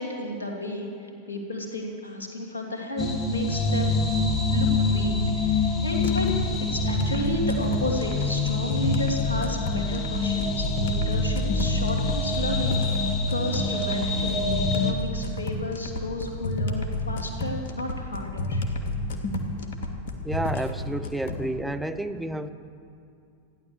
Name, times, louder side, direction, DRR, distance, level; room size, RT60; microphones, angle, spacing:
voice 1, 0.0-4.0 4.5-6.3 6.6-18.6, left 1 dB, 75° left, -1 dB, 2.8 m, -32 dB
sound 1, 3.0-14.9, left 3 dB, 25° left, 2.0 m, -26 dB
sound 2, 6.0-21.5, left 1 dB, 60° left, 1.6 m, -31 dB
voice 2, 20.2-22.5, right 1 dB, 5° right, 8 dB, 0.8 m, -30 dB
15.0 x 10.5 x 7.8 m, 2.5 s
figure-of-eight pair, 90°, 0 cm